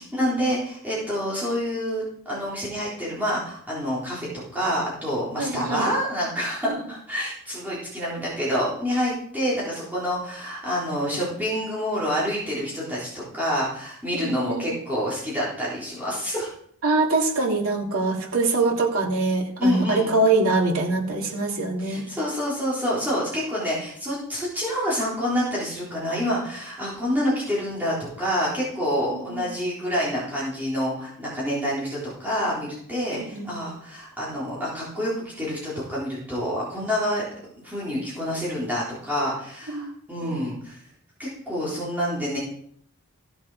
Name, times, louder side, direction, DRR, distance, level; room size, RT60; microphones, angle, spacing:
voice 1, 0.0-16.5 19.6-20.2 21.8-37.2 37.6-40.8 41.2-42.4, equal, 10° right, -8 dB, 3.7 m, -27 dB
voice 2, 5.4-5.9 6.7-6.8 14.1-14.7 16.8-22.0 29.0-29.5 33.1-33.5 39.7-39.9 40.2-40.3, right 3 dB, 70° right, 0 dB, 2.9 m, -24 dB
15.5 x 7.2 x 4.9 m, 0.67 s
head